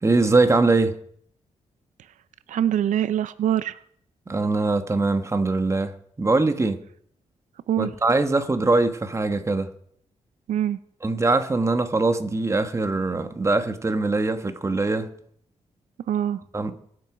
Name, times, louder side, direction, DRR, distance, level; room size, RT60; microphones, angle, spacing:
voice 1, 0.0-1.0 4.3-6.8 7.8-9.7 11.0-15.1 16.5-16.7, right 3 dB, 25° right, 1.3 m, -22 dB
voice 2, 2.5-3.8 7.7-7.9 10.5-10.8 16.1-16.4, right 10 dB, 85° right, 0.5 m, -23 dB
22.5 x 7.8 x 5.0 m
cardioid pair, 95°, 12 cm